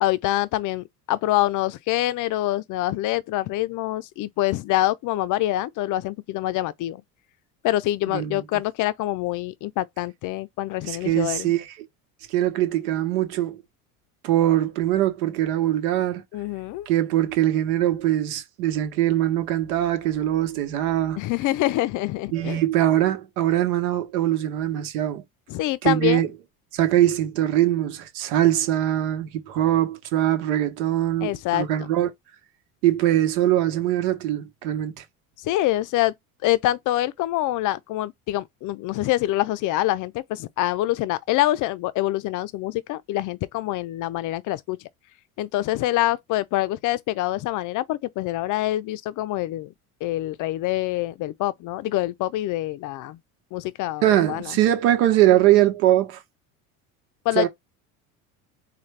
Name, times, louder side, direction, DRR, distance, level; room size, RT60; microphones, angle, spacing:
voice 1, 0.0-7.0 7.6-11.5 16.3-16.9 21.2-22.6 25.5-26.3 31.2-31.7 35.4-36.1 36.4-44.8 45.4-49.7 50.0-53.2 53.5-54.5 57.3-57.5, left 15 dB, 45° left, 0.5 m, -25 dB
voice 2, 8.1-8.4 10.8-11.7 12.3-13.6 14.2-16.2 16.9-21.2 22.3-25.2 25.8-26.3 26.7-32.1 32.8-35.0 54.0-56.2 57.3-57.5, right 13 dB, 70° right, 1.1 m, -22 dB
4.1 x 2.3 x 3.2 m
hypercardioid pair, 80°, 44 cm